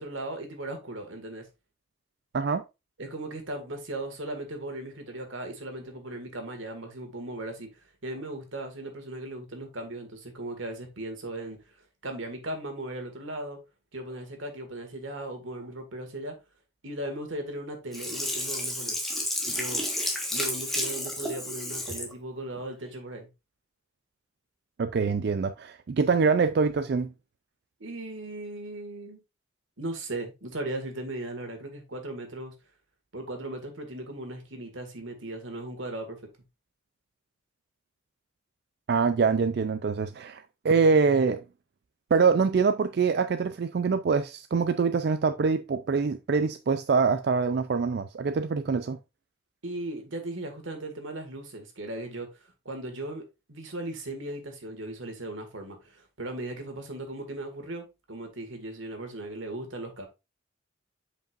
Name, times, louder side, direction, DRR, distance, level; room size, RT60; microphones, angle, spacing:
voice 1, 0.0-1.5 3.0-11.8 12.0-13.6 13.9-16.3 16.8-19.0 19.5-19.8 20.3-23.3 27.8-29.2 29.8-32.5 33.1-36.2 49.6-52.3 52.6-53.2 53.5-60.1, right 1 dB, 90° right, 1.8 m, -37 dB
Sink (filling or washing), 17.9-22.1 22.6-22.7, left 1 dB, ahead, 1.3 m, -31 dB
voice 2, 24.8-27.1 38.9-41.4 42.1-49.0, right 5 dB, 55° right, 0.4 m, -24 dB
7.5 x 5.3 x 2.5 m
head